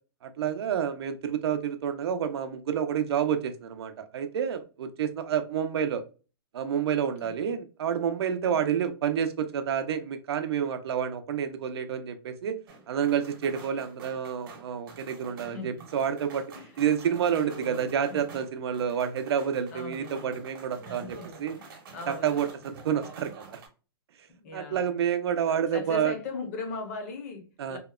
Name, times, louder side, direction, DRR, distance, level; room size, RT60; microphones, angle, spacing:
voice 1, 0.2-6.0 6.5-12.6 12.9-16.5 16.8-21.6 22.1-23.6 24.5-26.1 27.6-27.8, right 8 dB, 85° right, 9 dB, 0.5 m, -29 dB
voice 2, 7.2-7.6 8.3-8.6 15.3-15.9 16.5-17.8 18.1-18.4 19.7-20.4 20.9-22.7 24.3-25.0 25.4-27.8, left 3 dB, 35° left, 4 dB, 0.6 m, -40 dB
sound 1, 12.7-23.7, right 4 dB, 55° right, 0.8 m, -48 dB
2.8 x 2.0 x 2.3 m, 0.34 s
hypercardioid pair, 175°, 13 cm